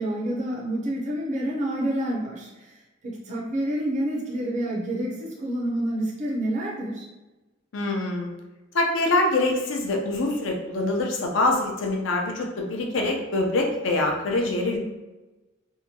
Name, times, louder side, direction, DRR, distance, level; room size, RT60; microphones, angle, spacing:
voice 1, 0.0-2.8 3.0-7.0, right 1 dB, 40° right, -3 dB, 0.5 m, -28 dB
voice 2, 7.7-8.3 8.7-14.8, left 2 dB, 70° left, 1 dB, 0.5 m, -24 dB
2.8 x 2.2 x 2.8 m, 1.1 s
head